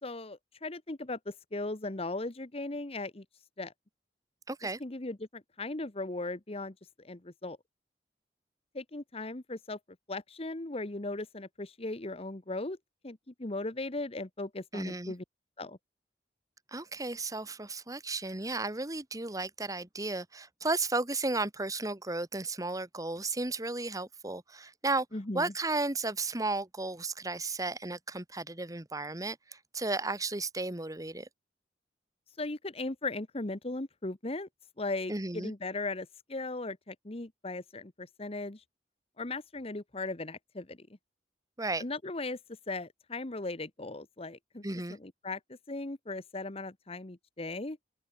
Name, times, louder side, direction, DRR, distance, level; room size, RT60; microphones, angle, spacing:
voice 1, 0.0-3.2 3.6-3.7 4.8-7.6 8.7-9.8 10.1-12.8 13.0-15.2 15.6-15.8 25.1-25.5 32.4-34.5 34.8-38.6 39.2-40.9 41.8-42.4 42.7-44.6 45.0-47.8, left 2 dB, 35° left, 1.2 m, -38 dB
voice 2, 4.5-4.8 14.7-15.1 16.7-25.1 25.3-31.3 35.1-35.5 41.6-41.8 44.6-45.0, right 3 dB, 20° right, 1.6 m, -34 dB
open air
head